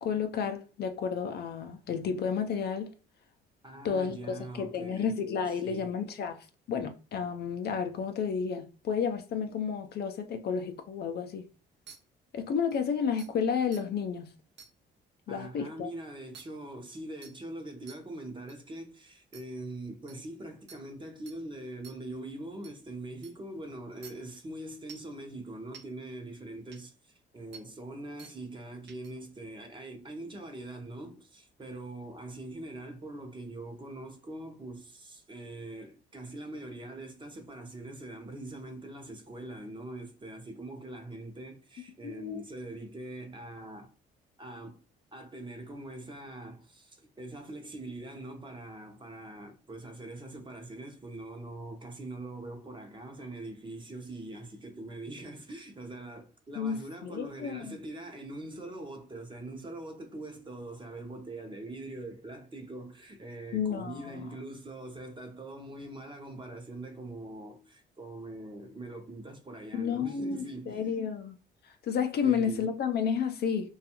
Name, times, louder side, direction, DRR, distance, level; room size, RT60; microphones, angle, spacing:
voice 1, 0.0-2.9 3.8-11.5 12.3-14.3 15.3-15.9 42.0-42.4 56.6-57.8 63.5-64.2 69.7-71.4 71.6-73.7, left 6 dB, 55° left, 0.4 m, -31 dB
voice 2, 3.6-5.2 5.5-5.9 15.3-43.9 44.4-44.8 45.1-70.8 72.2-72.7, right 2 dB, 25° right, 0.7 m, -43 dB
sound 1, 11.9-12.0 12.7-12.8 13.2-13.3 13.7-13.8 14.6-14.7 16.3-16.4 17.2-17.3 17.9-18.0 18.5-18.6 19.3-19.4 20.1-20.2 20.7-20.8 21.3-21.4 21.8-22.0 22.6-22.7 23.2-23.3 24.0-24.1 24.9-25.1 25.7-25.8 26.7-26.8 27.5-27.6 28.2-28.3 28.9-29.1, right 6 dB, 65° right, 0.6 m, -49 dB
2.4 x 2.3 x 2.8 m
cardioid pair, 85°, 20 cm